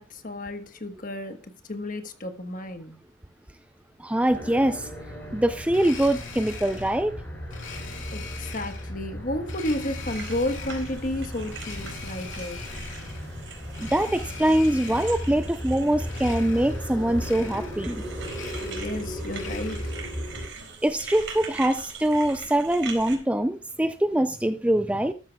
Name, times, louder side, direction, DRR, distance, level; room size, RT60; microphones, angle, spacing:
voice 1, 0.0-1.4 1.7-3.0 8.1-12.6 18.6-19.8, left 1 dB, 45° left, 1.4 m, -32 dB
voice 2, 4.0-4.9 5.3-7.1 13.8-18.0 20.8-25.1, right 1 dB, 5° right, 0.4 m, -23 dB
sound 1, 4.3-20.5, equal, 10° left, 6.5 m, -36 dB
Domestic sounds home sounds, 5.7-7.0 7.5-8.9 9.4-11.0 11.5-13.3 13.7-15.5 16.0-16.9 17.2-17.9 18.2-20.1, left 5 dB, 85° left, 3.1 m, -42 dB
sound 2, 10.0-23.1, right 4 dB, 80° right, 4.2 m, -42 dB
13.5 x 13.0 x 2.3 m
head